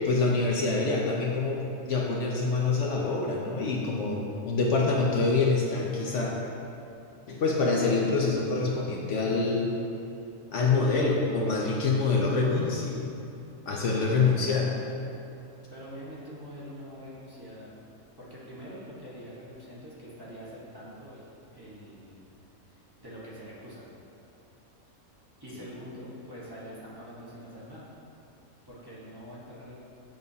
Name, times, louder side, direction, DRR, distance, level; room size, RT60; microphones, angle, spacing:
voice 1, 0.0-6.4 7.3-9.7 10.5-13.1 13.7-14.7, left 3 dB, 65° left, -2 dB, 0.9 m, -26 dB
voice 2, 15.7-17.7 18.2-22.2 22.7-23.9 25.4-27.9 28.6-29.7, equal, 20° right, -9 dB, 1.0 m, -44 dB
7.7 x 5.3 x 2.7 m, 2.8 s
omnidirectional pair, 1.4 m